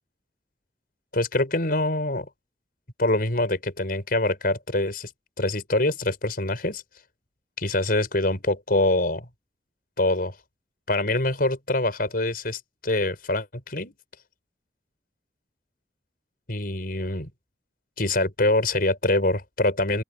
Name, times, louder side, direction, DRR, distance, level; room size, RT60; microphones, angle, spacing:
voice 1, 1.1-2.3 3.0-5.1 5.4-6.8 7.6-9.3 10.0-10.3 10.9-13.9 16.5-17.3 18.0-20.0, left 2 dB, 55° left, 5.8 m, -24 dB
open air
head